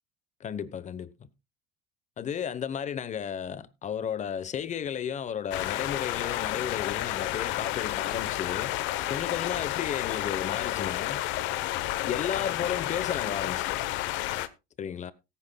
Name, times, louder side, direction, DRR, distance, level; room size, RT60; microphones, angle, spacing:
voice 1, 0.4-1.1 2.2-8.7 9.1-11.3 12.0-13.7 14.8-15.1, left 8 dB, 35° left, 1.0 m, -33 dB
sound 1, 5.5-14.5, left 15 dB, 65° left, 1.0 m, -31 dB
18.0 x 10.0 x 2.3 m
supercardioid pair, 100°, 20 cm